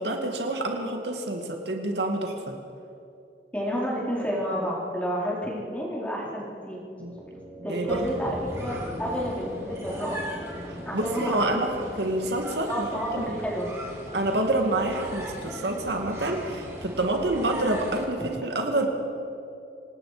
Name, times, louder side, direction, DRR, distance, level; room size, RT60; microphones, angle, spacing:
voice 1, 0.0-2.6 7.0-7.1 7.7-8.1 10.9-11.7 12.0-12.9 13.1-13.3 14.1-18.9, right 2 dB, 75° right, 3 dB, 2.3 m, -27 dB
voice 2, 3.5-6.8 7.6-10.2 10.8-11.8 12.7-13.7, equal, 10° left, -5 dB, 4.4 m, -30 dB
sound 1, 7.0-12.1, equal, 45° right, 6.1 m, -43 dB
sound 2, 7.9-18.1, equal, 15° right, 3.6 m, -38 dB
27.0 x 19.0 x 5.1 m, 2.6 s
head